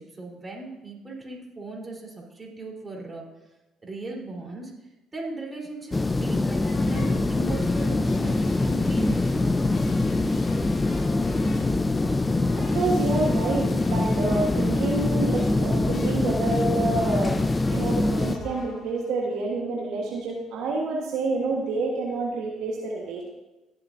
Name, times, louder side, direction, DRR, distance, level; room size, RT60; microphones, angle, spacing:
voice 1, 0.0-3.2 3.8-9.3, right 1 dB, 25° right, -2 dB, 3.8 m, -38 dB
sound 1, 5.9-18.4, left 2 dB, 20° left, 0.4 m, -24 dB
sound 2, 6.7-19.1, left 2 dB, 45° left, 2.4 m, -38 dB
voice 2, 12.5-17.4 17.7-23.2, right 3 dB, 75° right, -1 dB, 1.4 m, -28 dB
19.0 x 7.2 x 2.7 m, 1.0 s
supercardioid pair, 65°, 0 cm